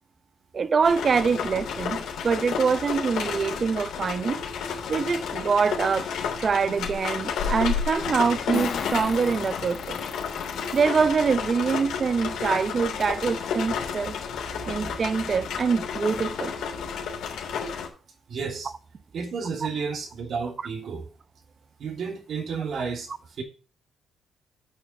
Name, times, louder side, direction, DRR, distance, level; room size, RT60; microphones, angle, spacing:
voice 1, 0.5-4.4 4.9-6.1 6.4-10.0 10.7-14.2 14.7-16.5, right 5 dB, 40° right, 0.8 m, -24 dB
sound 1, 0.8-17.9, left 6 dB, 80° left, 3.2 m, -31 dB
Fart, 5.8-5.9 8.5-10.8 11.5-11.6 12.8-12.9 13.3-13.4 13.8-14.1, left 6 dB, 60° left, 3.8 m, -34 dB
voice 2, 18.3-18.7 19.1-21.1 21.8-23.4, right 5 dB, 60° right, 2.8 m, -32 dB
8.6 x 7.0 x 5.6 m
cardioid pair, 90°, 0 cm